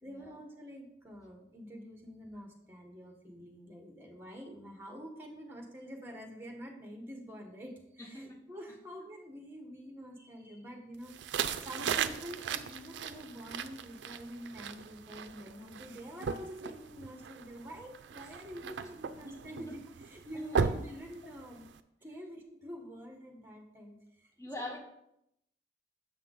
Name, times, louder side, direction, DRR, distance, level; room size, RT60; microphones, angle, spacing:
voice 1, 0.0-11.1 11.6-21.7 22.0-24.3 24.6-24.8, equal, 10° right, 2 dB, 1.1 m, -47 dB
voice 2, 8.0-8.4 18.6-18.7 19.3-19.4 20.3-20.4 22.1-22.2 24.4-24.8, left 1 dB, 15° left, 0 dB, 1.1 m, -43 dB
sound 1, 11.1-21.8, right 6 dB, 90° right, 0.4 m, -37 dB
7.0 x 5.9 x 3.7 m, 0.79 s
head